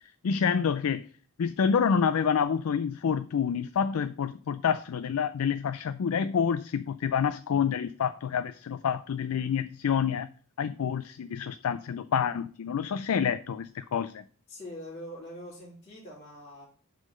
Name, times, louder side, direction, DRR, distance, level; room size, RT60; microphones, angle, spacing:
voice 1, 0.2-1.0 1.4-10.3 10.6-14.2, left 7 dB, 80° left, 0.4 m, -28 dB
voice 2, 14.5-16.7, left 1 dB, 30° left, 2.3 m, -43 dB
8.1 x 3.9 x 5.2 m
head